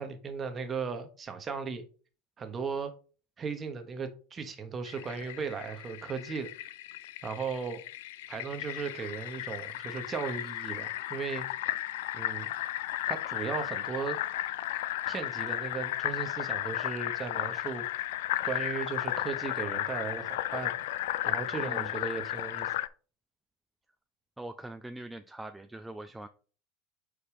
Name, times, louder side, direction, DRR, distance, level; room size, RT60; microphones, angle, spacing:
voice 1, 0.0-1.8 2.4-2.9 3.4-6.5 7.2-7.8 8.3-11.4 12.1-12.5 13.1-14.2 15.1-18.1 18.4-20.7 21.2-22.7, right 5 dB, 25° right, 1.2 m, -36 dB
Fill (with liquid), 4.9-22.9, left 14 dB, 80° left, 0.3 m, -34 dB
voice 2, 21.6-21.9 24.4-26.3, right 1 dB, 5° right, 0.4 m, -43 dB
5.0 x 4.3 x 5.1 m
supercardioid pair, 115°, 0 cm